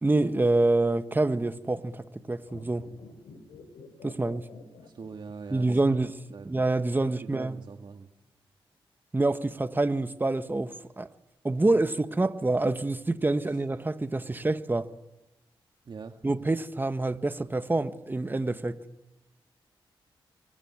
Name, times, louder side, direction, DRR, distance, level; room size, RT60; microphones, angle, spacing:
voice 1, 0.0-2.9 4.0-4.5 5.5-7.5 9.1-11.1 11.4-14.9 16.2-18.8, right 2 dB, 20° right, 1.5 m, -27 dB
sound 1, 2.4-5.8 6.1-6.2, left 5 dB, 90° left, 5.1 m, -49 dB
voice 2, 4.8-5.8 6.3-6.5 7.0-8.1 13.5-13.6 15.8-16.2, right 5 dB, 55° right, 1.9 m, -42 dB
24.5 x 24.0 x 9.8 m
cardioid pair, 75°, 10 cm